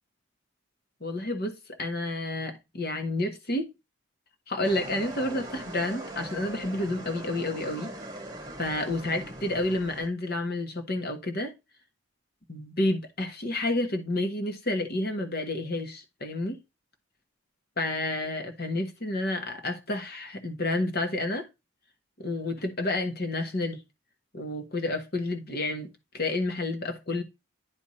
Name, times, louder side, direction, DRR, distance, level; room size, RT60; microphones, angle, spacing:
voice 1, 1.0-3.7 4.5-7.9 8.6-11.5 12.5-16.6 17.8-21.5 22.2-23.8 24.3-27.2, left 2 dB, 50° left, 1.3 m, -30 dB
sound 1, 4.6-10.1, right 1 dB, 20° right, 1.4 m, -41 dB
10.0 x 3.5 x 4.2 m
head